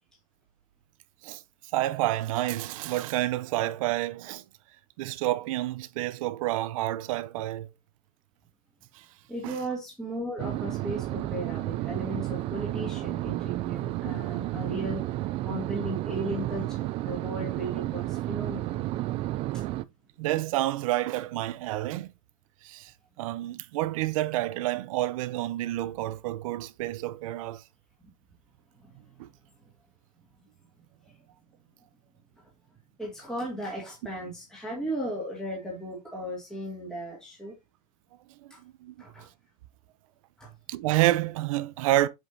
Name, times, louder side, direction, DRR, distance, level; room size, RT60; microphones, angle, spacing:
voice 1, 1.7-4.4 5.0-7.7 8.9-9.0 9.4-9.6 20.2-22.1 22.6-22.9 23.2-27.6 29.2-29.3 38.4-38.9 40.7-42.1, right 15 dB, 60° right, 0.8 m, -29 dB
voice 2, 9.3-15.0 15.4-18.8 19.5-19.6 28.8-28.9 31.1-31.2 33.0-37.5 38.5-38.6 39.0-39.3 40.4-40.5, right 1 dB, 5° left, 2.6 m, -36 dB
sound 1, 10.4-19.8, right 16 dB, 30° right, 0.3 m, -32 dB
8.2 x 5.4 x 2.8 m
supercardioid pair, 135°, 19 cm